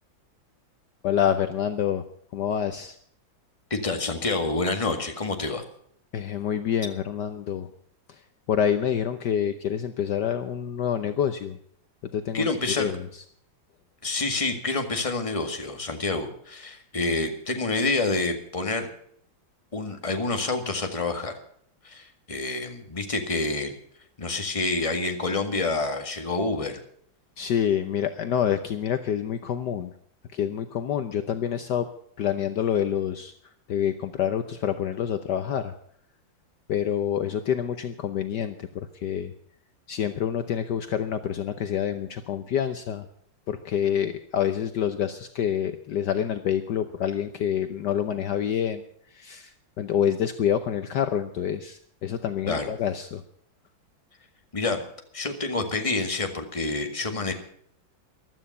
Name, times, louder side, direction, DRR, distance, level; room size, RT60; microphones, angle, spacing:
voice 1, 1.0-2.0 2.3-3.0 6.1-7.7 8.1-8.2 8.5-11.6 12.0-13.2 27.4-29.9 30.3-31.9 32.2-33.3 33.7-35.7 36.7-39.3 39.9-43.1 43.5-48.8 49.1-53.2, left 9 dB, 65° left, 10 dB, 1.3 m, -27 dB
voice 2, 3.7-5.6 12.3-12.9 14.0-18.9 19.7-21.3 21.8-23.7 24.2-26.8 52.5-52.7 54.5-54.8 55.1-57.3, left 3 dB, 15° left, 5 dB, 1.8 m, -28 dB
15.5 x 12.5 x 5.5 m, 0.65 s
omnidirectional pair, 2.1 m